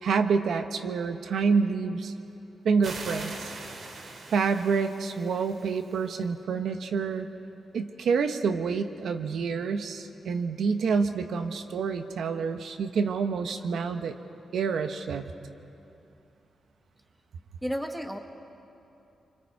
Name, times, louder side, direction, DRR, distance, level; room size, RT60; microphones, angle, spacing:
voice 1, 0.0-2.1 2.6-3.5 4.3-7.3 7.7-14.2 14.5-15.3, right 5 dB, 75° right, 7 dB, 1.0 m, -27 dB
sound 1, 2.8-6.1, right 3 dB, 55° right, 2.2 m, -42 dB
voice 2, 17.6-18.2, equal, 5° right, 5 dB, 1.1 m, -32 dB
26.0 x 25.0 x 4.7 m, 2.8 s
wide cardioid pair, 150°, 0 cm